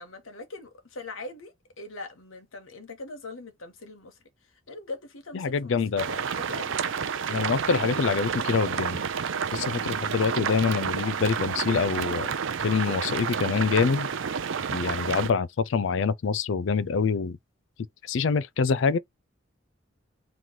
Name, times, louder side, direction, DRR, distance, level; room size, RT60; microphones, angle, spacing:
voice 1, 0.0-4.1 4.7-6.8, left 2 dB, 85° left, 1.3 m, -41 dB
voice 2, 5.3-6.1 7.3-9.0 9.5-12.3 12.6-14.1 14.7-17.4 18.1-19.0, left 5 dB, 65° left, 0.4 m, -25 dB
sound 1, 6.0-15.3, right 6 dB, 70° right, 0.5 m, -30 dB
3.1 x 2.8 x 3.8 m
head